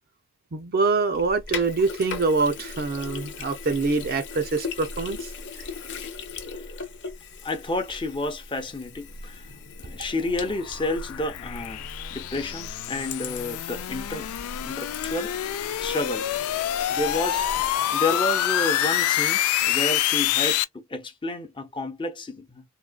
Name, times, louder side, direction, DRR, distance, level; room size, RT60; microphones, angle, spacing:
voice 1, 0.5-5.3, right 4 dB, 45° right, 0.5 m, -25 dB
Sink (filling or washing), 1.1-17.8, left 4 dB, 55° left, 0.8 m, -39 dB
voice 2, 7.4-9.4 9.8-14.3 14.6-15.5 15.8-16.3 16.9-17.5 17.9-22.6, left 2 dB, 20° left, 0.7 m, -30 dB
sound 1, 9.3-20.6, left 12 dB, 75° left, 0.3 m, -27 dB
3.7 x 2.2 x 2.2 m
head